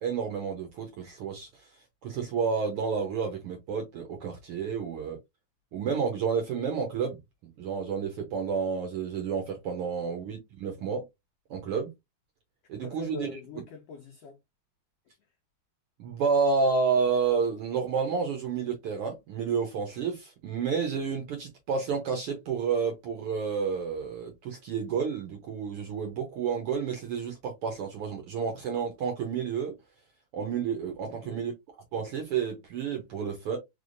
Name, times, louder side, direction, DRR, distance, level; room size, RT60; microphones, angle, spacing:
voice 1, 0.0-1.6 2.0-5.2 5.7-7.2 7.6-11.0 11.5-11.9 12.7-13.3 16.0-29.7 30.3-31.5 31.9-33.6, right 5 dB, 70° right, 1.4 m, -30 dB
voice 2, 12.8-14.4 31.1-31.5, left 3 dB, 85° left, 1.3 m, -43 dB
4.3 x 3.3 x 2.5 m
omnidirectional pair, 3.5 m